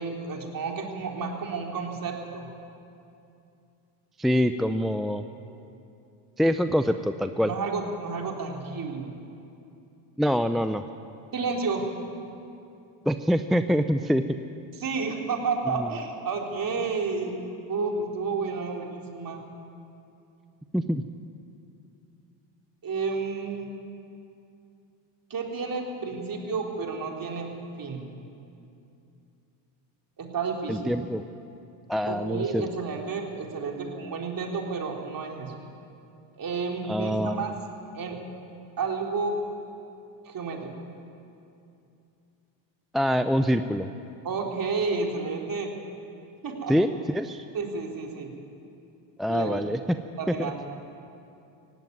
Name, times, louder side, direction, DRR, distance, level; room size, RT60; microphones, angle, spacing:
voice 1, 0.0-2.5 7.4-9.2 11.3-11.9 14.8-17.4 17.7-19.4 22.8-23.7 25.3-27.5 27.8-28.1 30.2-31.0 32.1-35.5 36.4-37.6 37.9-38.2 38.8-39.3 40.3-40.7 44.2-45.7 46.4-46.8 47.5-48.3 49.3-49.7 50.2-50.5, right 4 dB, 40° right, 1 dB, 3.7 m, -31 dB
voice 2, 4.2-5.2 6.4-7.5 10.2-10.8 13.1-14.2 15.8-15.9 20.7-21.0 30.7-31.2 31.9-32.7 36.9-37.5 42.9-43.9 46.7-47.4 49.2-49.8 50.3-50.5, equal, ahead, 9 dB, 0.6 m, -25 dB
17.5 x 16.0 x 9.5 m, 2.6 s
supercardioid pair, 80°, 49 cm